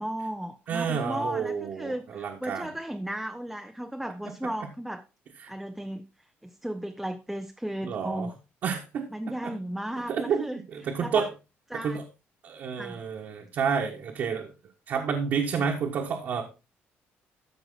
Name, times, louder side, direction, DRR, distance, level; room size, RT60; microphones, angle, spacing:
voice 1, 0.0-5.0 5.5-6.1 6.4-8.3 9.1-10.6 11.0-11.3 11.7-12.0 12.7-13.0, right 1 dB, 5° right, 7 dB, 0.5 m, -35 dB
voice 2, 0.7-2.7 5.4-5.5 7.8-8.3 8.6-9.1 9.4-9.5 10.1-11.3 11.7-12.0 12.4-14.5 14.9-16.4, right 6 dB, 50° right, 1 dB, 1.3 m, -29 dB
13.5 x 5.2 x 3.7 m, 0.28 s
cardioid pair, 160°, 4 cm